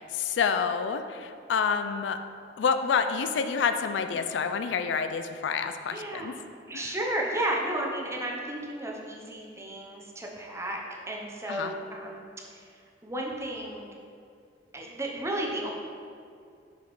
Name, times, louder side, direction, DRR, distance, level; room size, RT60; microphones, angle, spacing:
voice 1, 0.0-2.2 2.6-6.3 6.7-6.8 11.5-11.7, left 6 dB, 75° left, 8 dB, 0.3 m, -28 dB
voice 2, 5.9-6.3 6.7-12.2 12.5-12.7 13.0-13.9 14.7-15.7, right 1 dB, 15° right, -1 dB, 0.7 m, -33 dB
6.5 x 5.1 x 3.1 m, 2.4 s
head